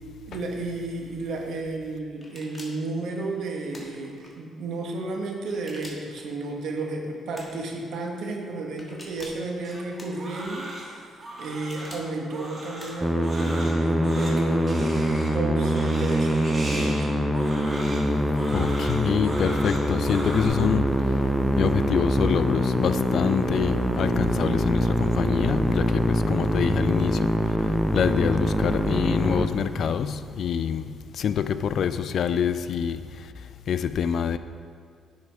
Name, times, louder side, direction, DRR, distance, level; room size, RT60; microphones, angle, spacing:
voice 1, 0.3-11.1 11.4-17.1, right 2 dB, 75° right, 1 dB, 1.0 m, -32 dB
sound 1, 2.2-2.9 3.7-4.3 5.5-6.2 7.3-7.7 8.8-9.5 10.0-10.5 11.4-12.1 12.8-13.2, left 1 dB, 15° left, 1.4 m, -46 dB
Crying sobbing, 9.6-20.5, right 1 dB, 35° right, 1.4 m, -38 dB
Musical instrument, 13.0-30.1, equal, ahead, 0.5 m, -24 dB
voice 2, 18.5-21.0 21.6-27.3 27.6-33.3 33.7-34.4, left 7 dB, 65° left, 12 dB, 0.3 m, -26 dB
10.5 x 4.8 x 3.4 m, 2.1 s
cardioid pair, 90°, 0 cm